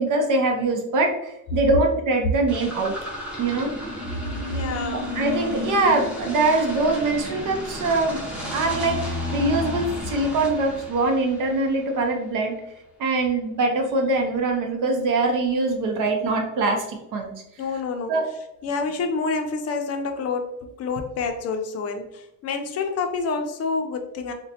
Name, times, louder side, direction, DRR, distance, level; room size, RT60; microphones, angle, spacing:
voice 1, 0.0-2.9 3.4-3.7 5.1-12.5 13.0-17.3 18.1-18.2, right 2 dB, 65° right, 3 dB, 0.7 m, -23 dB
sound 1, 2.5-12.0, left 1 dB, 5° right, 0.6 m, -32 dB
voice 2, 4.5-5.1 13.3-13.4 17.6-18.1 18.6-24.3, left 4 dB, 45° left, 5 dB, 0.5 m, -28 dB
3.9 x 2.2 x 2.7 m, 0.86 s
cardioid pair, 160°, 35 cm